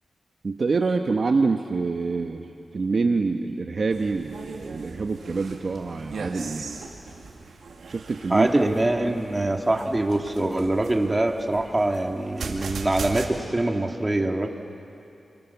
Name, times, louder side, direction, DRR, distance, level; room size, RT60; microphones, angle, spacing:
voice 1, 0.4-6.8 7.9-8.5, right 4 dB, 55° right, 4 dB, 1.1 m, -26 dB
sound 1, 3.9-13.3, right 4 dB, 80° right, 2.5 m, -39 dB
voice 2, 8.3-14.5, right 2 dB, 25° right, 2 dB, 2.5 m, -24 dB
29.5 x 24.0 x 7.2 m, 2.8 s
cardioid pair, 60°, 0 cm